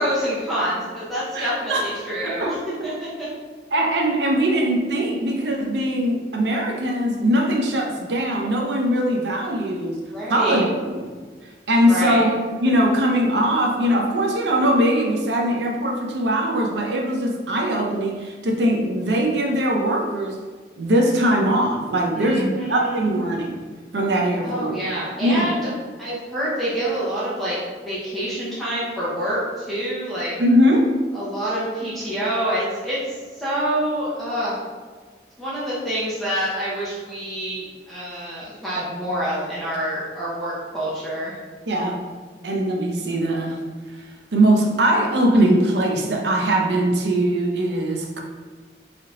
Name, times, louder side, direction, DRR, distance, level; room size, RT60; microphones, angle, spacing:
voice 1, 0.0-3.3 10.1-10.6 11.9-12.3 22.2-23.1 24.4-25.6 26.0-27.6 27.8-30.4 31.1-34.6 35.4-41.3, equal, ahead, -10 dB, 0.8 m, -27 dB
voice 2, 1.3-1.9 2.2-2.5 3.7-10.0 10.3-11.1 11.7-20.4 20.8-23.6 23.9-24.7 25.2-25.5 30.4-30.9 41.7-42.0 42.4-43.6 44.3-48.2, right 1 dB, 80° right, 1 dB, 0.6 m, -21 dB
3.4 x 2.8 x 3.7 m, 1.4 s
head